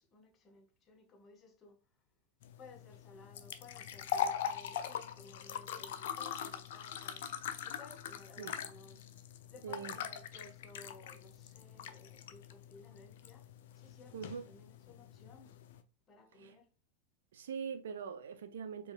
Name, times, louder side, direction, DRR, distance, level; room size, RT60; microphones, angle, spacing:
voice 1, 0.0-1.8 2.6-7.3 7.6-9.1 9.5-13.5 13.7-15.5 16.1-16.7, left 3 dB, 25° left, 1.0 m, -58 dB
sound 1, 2.4-15.8, left 9 dB, 55° left, 0.4 m, -42 dB
voice 2, 9.6-10.0 14.1-14.5 16.4-16.6 17.3-18.9, right 6 dB, 60° right, 0.6 m, -42 dB
4.7 x 3.2 x 2.4 m
figure-of-eight pair, 90°, 0 cm